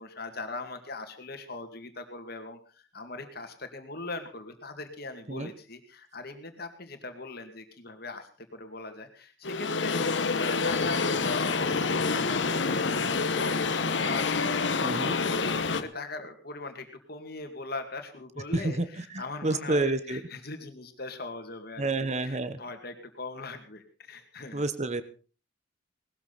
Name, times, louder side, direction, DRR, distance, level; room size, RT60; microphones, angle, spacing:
voice 1, 0.0-2.6 2.9-24.6, left 3 dB, 55° left, 6 dB, 2.4 m, -41 dB
sound 1, 9.4-15.8, left 4 dB, 70° left, 1.0 m, -28 dB
Boat Water vehicle, 10.7-15.8, left 1 dB, 35° left, 1.2 m, -37 dB
voice 2, 14.8-15.2 18.5-18.9 19.1-20.2 21.8-22.6 24.5-25.0, right 2 dB, 35° right, 13 dB, 1.0 m, -29 dB
19.0 x 13.5 x 4.2 m, 0.37 s
head